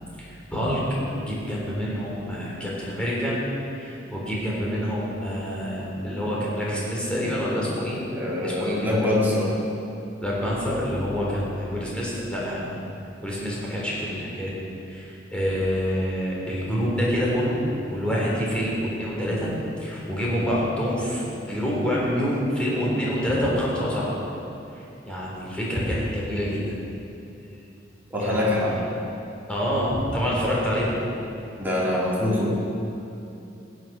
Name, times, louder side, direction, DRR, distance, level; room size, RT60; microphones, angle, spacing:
voice 1, 0.2-3.4 3.7-8.0 8.4-9.2 10.2-12.7 13.2-14.6 14.9-17.6 17.9-19.5 19.8-24.2 24.7-26.8 28.2-28.8 29.5-31.0, equal, 5° left, -6 dB, 3.7 m, -27 dB
voice 2, 8.1-9.7 28.1-28.8 31.6-32.5, left 1 dB, 10° right, -7 dB, 3.4 m, -24 dB
16.0 x 9.5 x 6.1 m, 2.8 s
head